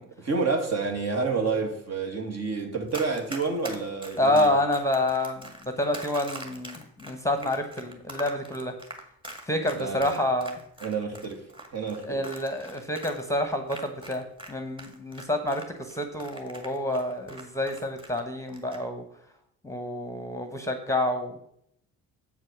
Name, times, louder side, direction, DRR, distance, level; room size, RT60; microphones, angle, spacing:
voice 1, 0.2-4.5 9.7-10.2 10.8-11.4 11.7-12.3, right 4 dB, 45° right, 2.0 m, -29 dB
Run, 2.9-14.5 14.8-18.2 18.5-18.8, right 1 dB, 15° right, 1.9 m, -42 dB
voice 2, 4.2-8.7 9.5-10.6 12.1-19.0 19.6-21.4, left 1 dB, 10° left, 1.1 m, -28 dB
7.4 x 4.7 x 6.0 m
supercardioid pair, 65°, 35 cm